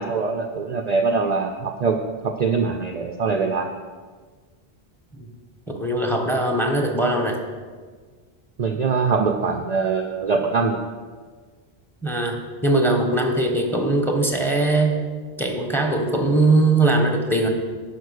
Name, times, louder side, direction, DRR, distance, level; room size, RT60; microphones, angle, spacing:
voice 1, 0.0-3.8 8.6-10.8, right 4 dB, 50° right, 5 dB, 0.6 m, -23 dB
voice 2, 5.8-7.4 12.0-12.4 12.6-14.9 15.4-17.5, right 2 dB, ahead, 3 dB, 1.1 m, -20 dB
11.5 x 5.1 x 6.5 m, 1.5 s
omnidirectional pair, 1.0 m